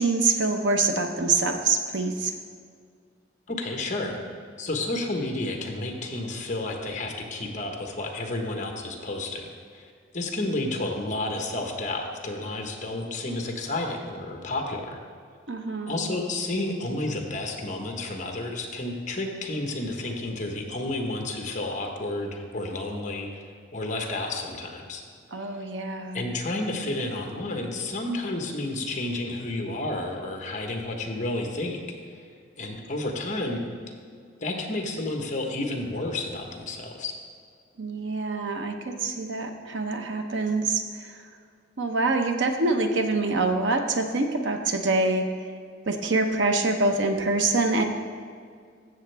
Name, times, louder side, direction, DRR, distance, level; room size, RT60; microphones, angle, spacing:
voice 1, 0.0-2.3 15.5-16.1 25.3-26.2 37.8-40.8 41.8-45.2 45.9-47.8, right 3 dB, 80° right, 5 dB, 0.8 m, -25 dB
voice 2, 3.5-4.2 4.6-9.5 9.7-15.0 15.9-25.0 26.1-31.8 32.1-32.2 32.6-33.6 34.4-37.1, left 2 dB, 40° left, 2 dB, 1.2 m, -31 dB
14.5 x 7.1 x 3.4 m, 2.1 s
head